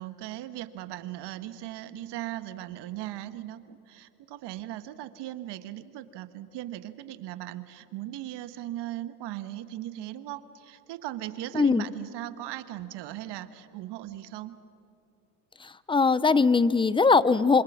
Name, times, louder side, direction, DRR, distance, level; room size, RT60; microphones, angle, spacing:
voice 1, 0.0-14.5, right 14 dB, 55° right, 12 dB, 1.4 m, -38 dB
voice 2, 11.5-11.8 15.6-17.6, left 4 dB, 10° left, 18 dB, 0.5 m, -21 dB
26.5 x 25.5 x 6.2 m, 2.8 s
supercardioid pair, 95°, 50 cm